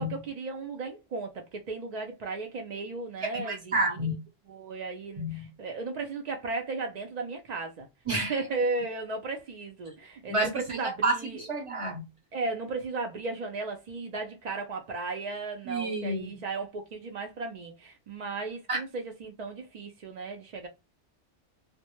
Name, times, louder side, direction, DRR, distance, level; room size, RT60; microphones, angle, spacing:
voice 1, 0.0-4.0 4.5-7.9 8.3-11.4 12.3-20.7, right 3 dB, 70° right, 0.4 m, -35 dB
voice 2, 3.2-4.1 5.2-5.5 8.1-8.4 10.3-12.1 15.6-16.4 18.7-18.8, right 2 dB, 30° right, 0.8 m, -30 dB
2.1 x 2.0 x 2.8 m
omnidirectional pair, 1.2 m